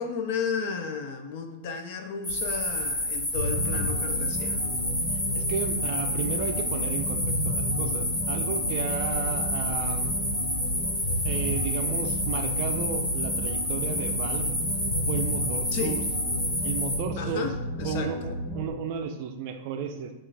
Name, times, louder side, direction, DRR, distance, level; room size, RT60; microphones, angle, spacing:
voice 1, 0.0-4.6 15.7-16.0 17.2-18.3, left 5 dB, 45° left, 5 dB, 0.5 m, -33 dB
sound 1, 2.2-17.0, left 1 dB, 10° left, 1.4 m, -29 dB
sound 2, 3.4-18.7, equal, 90° left, 1.2 m, -32 dB
voice 2, 5.4-10.1 11.2-14.5 15.1-16.0 16.6-17.5 17.8-20.1, right 6 dB, 45° right, 6 dB, 0.4 m, -33 dB
5.9 x 2.5 x 3.3 m, 1.0 s
supercardioid pair, 170°, 0 cm